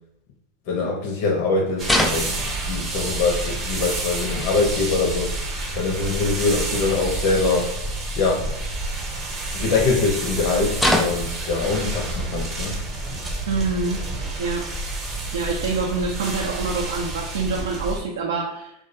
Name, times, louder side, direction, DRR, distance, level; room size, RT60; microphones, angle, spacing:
voice 1, 0.7-5.3 5.7-7.7 8.2-8.5 9.5-12.8, left 3 dB, 60° left, 0 dB, 0.5 m, -23 dB
sound 1, 1.8-2.6 3.8-3.9 4.2-4.7 6.3-6.5 8.5-9.2 9.8-9.9 10.8-11.4 12.4-12.5 12.9-13.5 14.0-14.1 15.2-15.3 16.4-16.5 17.9-18.2, left 1 dB, 5° left, 0.3 m, -26 dB
sound 2, 1.8-18.0, right 2 dB, 30° right, 0.7 m, -29 dB
voice 2, 13.5-14.0 14.4-14.7 15.3-18.7, right 4 dB, 90° right, -1 dB, 0.4 m, -26 dB
2.3 x 2.1 x 2.6 m, 0.81 s
supercardioid pair, 125°, 0 cm